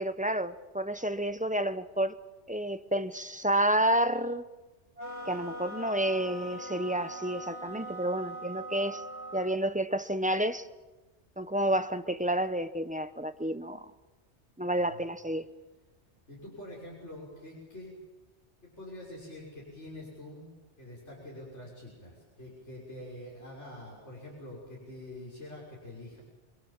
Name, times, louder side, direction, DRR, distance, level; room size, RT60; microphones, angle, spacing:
voice 1, 0.0-2.2 2.5-4.4 5.3-9.0 9.3-10.7 11.4-13.9 14.6-15.5, right 1 dB, 10° right, 0.8 m, -30 dB
sound 1, 5.0-9.6, right 1 dB, 75° right, 2.6 m, -41 dB
voice 2, 16.3-18.0 18.6-20.5 20.8-26.2, left 1 dB, 80° left, 6.6 m, -45 dB
28.0 x 23.5 x 7.3 m
omnidirectional pair, 1.2 m